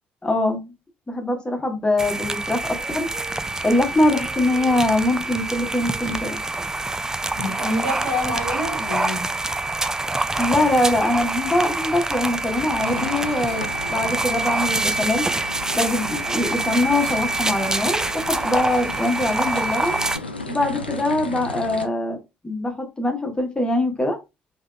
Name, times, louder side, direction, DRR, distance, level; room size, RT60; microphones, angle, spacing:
voice 1, 0.2-0.6 1.1-3.1 3.6-6.4 10.4-15.3 15.7-20.0 20.5-22.2 22.4-24.2, left 1 dB, 15° left, 1.1 m, -23 dB
sound 1, 2.0-20.2, right 2 dB, 10° right, 0.3 m, -26 dB
voice 2, 7.3-9.3, left 1 dB, 85° right, 1.6 m, -27 dB
sound 2, 12.8-21.9, left 2 dB, 85° left, 0.3 m, -35 dB
3.3 x 3.2 x 2.4 m
figure-of-eight pair, 45°, 5 cm